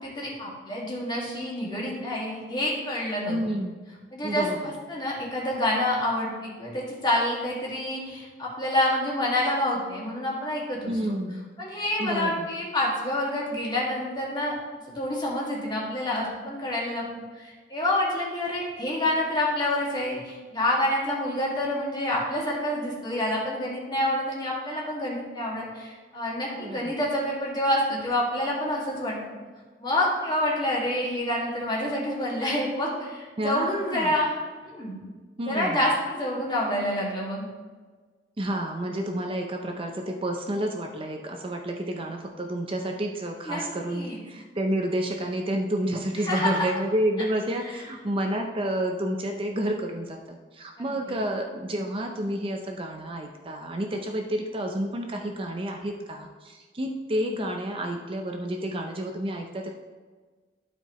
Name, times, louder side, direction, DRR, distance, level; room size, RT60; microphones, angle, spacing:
voice 1, 0.0-3.4 4.1-11.1 11.6-14.5 15.0-17.0 17.4-29.2 29.8-34.3 34.6-35.0 35.4-37.5 43.5-44.2 46.3-46.7 50.8-51.2, left 1 dB, 25° left, -4 dB, 2.0 m, -28 dB
voice 2, 3.3-3.8 4.2-4.7 10.9-11.5 12.0-12.5 26.5-27.0 33.4-34.1 35.4-35.8 38.4-59.7, right 1 dB, 30° right, 3 dB, 0.5 m, -30 dB
12.0 x 4.6 x 3.0 m, 1.4 s
head